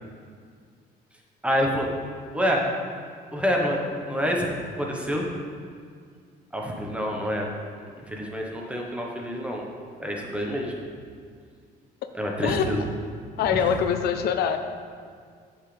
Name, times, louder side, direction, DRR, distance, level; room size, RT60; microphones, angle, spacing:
voice 1, 1.4-1.9 2.3-2.6 3.3-4.5 4.7-5.2 6.5-7.5 8.1-9.6 10.0-10.7 12.1-12.8 13.5-13.6, equal, 5° right, -1 dB, 1.2 m, -27 dB
voice 2, 12.4-12.7 13.4-14.6, left 8 dB, 70° left, 8 dB, 0.5 m, -24 dB
8.4 x 7.4 x 3.4 m, 2.1 s
cardioid pair, 110°, 17 cm